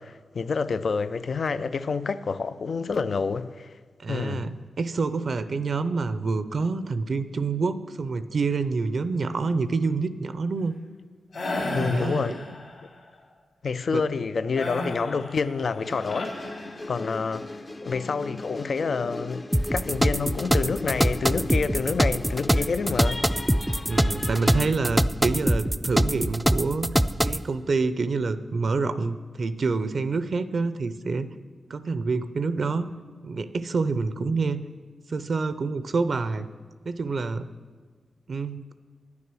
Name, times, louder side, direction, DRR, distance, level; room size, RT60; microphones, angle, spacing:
voice 1, 0.0-3.7 4.1-4.5 11.7-12.6 13.6-16.3 16.9-23.2, left 5 dB, 65° left, 0.4 m, -28 dB
voice 2, 4.0-10.7 11.6-12.4 13.9-14.0 23.9-26.9 27.2-31.3 31.7-32.9 33.2-34.6 35.1-36.5 36.9-37.5 38.3-38.7, right 4 dB, 65° right, 0.5 m, -27 dB
sound 1, 11.3-12.9 14.6-17.2, left 2 dB, 80° left, 2.5 m, -34 dB
sound 2, 15.8-24.7, left 2 dB, 40° left, 0.7 m, -38 dB
sound 3, 19.5-27.4, equal, 5° right, 0.4 m, -23 dB
9.6 x 9.5 x 6.2 m
cardioid pair, 50°, 0 cm